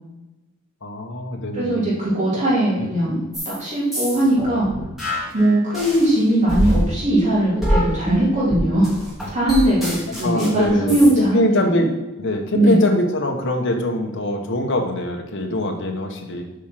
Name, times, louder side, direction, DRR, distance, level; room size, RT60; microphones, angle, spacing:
voice 1, 0.8-1.8 2.8-2.9 10.1-11.9 12.2-16.4, left 1 dB, 60° left, 2 dB, 1.3 m, -23 dB
voice 2, 1.5-3.2 3.6-4.7 5.3-8.9 9.3-11.8 12.5-12.8, right 1 dB, 35° right, -8 dB, 2.8 m, -19 dB
sound 1, 3.3-3.6 3.9-6.1 6.5-11.1, equal, ahead, 2.7 m, -24 dB
8.2 x 4.9 x 5.9 m, 1.0 s
head